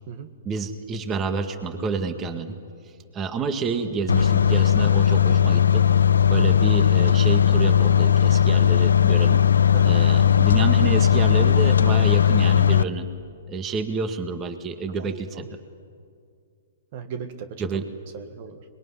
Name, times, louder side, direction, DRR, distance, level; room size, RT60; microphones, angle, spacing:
voice 1, 0.5-2.6 3.1-5.8 6.3-9.4 9.8-13.1 13.5-15.6 17.6-17.8, right 4 dB, 25° right, 8 dB, 1.8 m, -29 dB
sound 1, 4.1-12.8, left 8 dB, 90° left, 0.7 m, -18 dB
voice 2, 4.3-4.7 9.7-10.0 15.0-15.5 16.9-18.6, right 7 dB, 50° right, 9 dB, 1.7 m, -38 dB
24.5 x 21.5 x 9.9 m, 2.2 s
hypercardioid pair, 130°, 0 cm